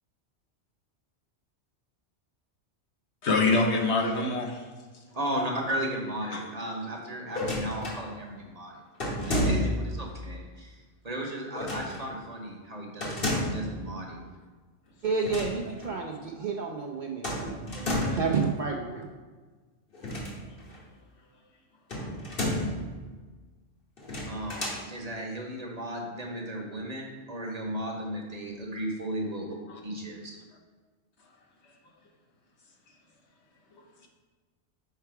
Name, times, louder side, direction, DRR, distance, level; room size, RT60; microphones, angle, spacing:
voice 1, 3.2-4.6 6.3-6.4 29.7-29.8, left 3 dB, 70° left, 1 dB, 1.1 m, -25 dB
voice 2, 5.1-8.7 9.3-10.7 11.0-14.3 24.3-29.6 29.8-30.4, right 1 dB, 35° right, 0 dB, 1.0 m, -35 dB
sound 1, 7.3-8.0 9.0-9.9 11.5-12.0 13.0-13.7 15.1-15.6 15.8-15.9 17.2-18.3 19.9-20.8 21.9-22.8 24.0-24.8, left 1 dB, 50° left, 1.4 m, -31 dB
voice 3, 15.0-19.1, right 4 dB, 55° right, 0 dB, 0.6 m, -31 dB
5.8 x 4.5 x 4.6 m, 1.4 s
omnidirectional pair, 1.2 m